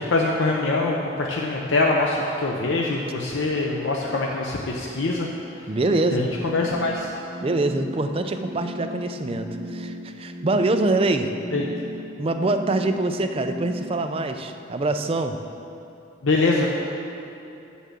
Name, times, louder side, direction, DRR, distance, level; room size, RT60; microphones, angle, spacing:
voice 1, 0.0-5.3 6.1-6.3 6.5-7.1 11.5-11.6 16.2-16.7, left 3 dB, 70° left, -1 dB, 0.7 m, -23 dB
voice 2, 5.7-6.3 7.4-11.3 11.5-11.8 12.2-15.4, right 2 dB, 30° right, 7 dB, 0.4 m, -24 dB
sound 1, 6.2-13.9, equal, 75° right, 2.4 m, -36 dB
7.5 x 7.2 x 6.9 m, 2.9 s
head